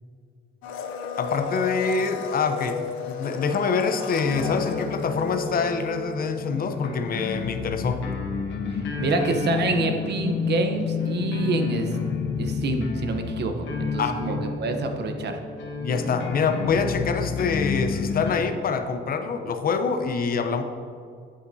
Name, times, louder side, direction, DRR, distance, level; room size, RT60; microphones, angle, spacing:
Domestic sounds home sounds, 0.6-5.9 6.1-6.2, left 7 dB, 85° left, 0.6 m, -34 dB
voice 1, 1.2-2.8 3.1-8.1 14.0-14.4 15.8-20.6, left 5 dB, 50° left, 7 dB, 0.7 m, -25 dB
sound 1, 4.2-18.3, left 5 dB, 70° left, 1.1 m, -30 dB
voice 2, 8.7-12.0 12.4-15.4, right 3 dB, 60° right, 5 dB, 0.9 m, -27 dB
8.3 x 7.6 x 2.7 m, 2.3 s
cardioid pair, 90°, 20 cm